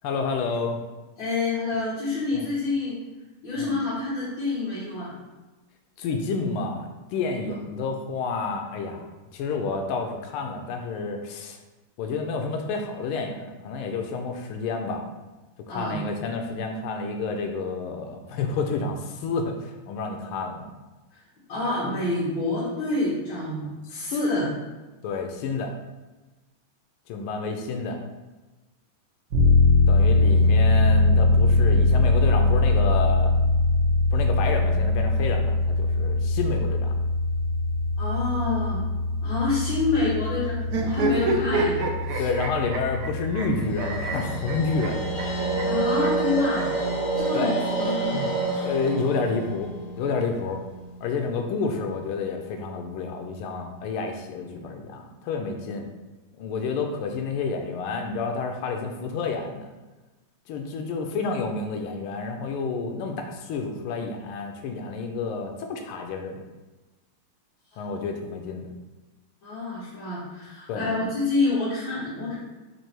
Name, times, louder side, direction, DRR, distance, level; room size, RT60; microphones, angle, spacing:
voice 1, 0.0-0.8 2.3-2.5 3.6-3.8 6.0-9.0 9.3-11.6 12.0-15.1 15.7-20.7 23.9-24.3 25.0-25.7 27.1-28.0 29.9-33.3 34.1-36.9 42.2-45.1 47.3-47.6 48.6-50.6 51.0-55.8 56.4-59.7 60.5-66.4 67.8-68.7 70.7-70.8, left 4 dB, 90° left, 4 dB, 1.5 m, -29 dB
voice 2, 1.2-3.0 3.4-5.1 15.7-16.0 21.5-24.5 38.0-38.8 39.2-41.8 42.1-42.3 45.7-46.7 47.2-48.1 48.5-48.7 69.4-72.3, left 3 dB, 70° left, -11 dB, 2.1 m, -27 dB
sound 1, 29.3-45.7, left 2 dB, 55° right, 0.9 m, -22 dB
sound 2, 40.6-46.8 47.8-48.9, right 4 dB, 80° right, 0.8 m, -30 dB
sound 3, 43.6-50.8, right 2 dB, 35° left, 0.4 m, -28 dB
4.6 x 2.6 x 4.4 m, 1.2 s
omnidirectional pair, 2.3 m